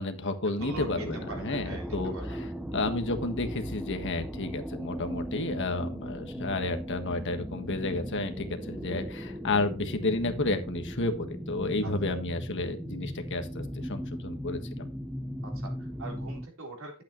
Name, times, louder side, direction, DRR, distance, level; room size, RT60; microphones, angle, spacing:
voice 1, 0.0-2.4 2.7-14.9, left 2 dB, 55° left, 7 dB, 1.5 m, -31 dB
sound 1, 0.6-16.5, equal, 5° right, 0.6 m, -37 dB
voice 2, 0.6-2.4 11.8-12.1 15.4-17.0, right 3 dB, 65° right, 0 dB, 3.8 m, -44 dB
11.5 x 8.4 x 3.1 m, 0.32 s
head